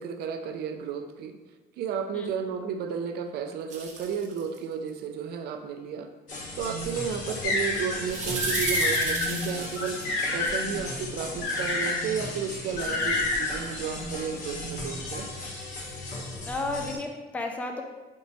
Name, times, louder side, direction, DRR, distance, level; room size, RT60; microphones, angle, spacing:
voice 1, 0.0-1.4 1.8-6.1 6.6-10.0 10.3-15.3, right 6 dB, 70° right, 6 dB, 0.4 m, -33 dB
sound 1, 3.7-4.6 8.1-10.1, right 4 dB, 45° right, 0.7 m, -33 dB
sound 2, 6.3-17.0, left 2 dB, 50° left, 1.0 m, -36 dB
sound 3, 7.4-8.0 8.4-9.3 9.8-10.6 11.4-12.0 12.8-13.5, left 2 dB, 80° left, 1.3 m, -27 dB
voice 2, 16.3-17.8, left 2 dB, 10° left, 3 dB, 0.3 m, -33 dB
4.5 x 3.0 x 2.7 m, 1.2 s
cardioid pair, 110°, 17 cm